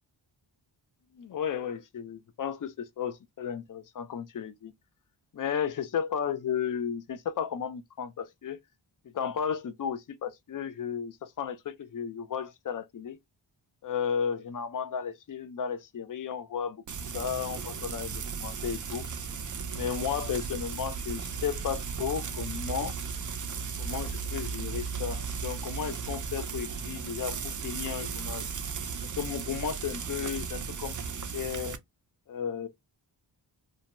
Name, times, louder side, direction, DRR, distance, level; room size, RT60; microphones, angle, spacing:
voice 1, 1.1-4.7 5.3-8.6 9.0-13.2 13.8-16.8 17.1-19.0 19.7-22.9 23.8-28.5 29.2-31.8 32.3-32.7, left 7 dB, 45° left, 0.5 m, -34 dB
Frying (food), 16.9-31.8, right 6 dB, 40° right, 0.5 m, -36 dB
2.6 x 2.2 x 2.8 m
cardioid pair, 60°, 47 cm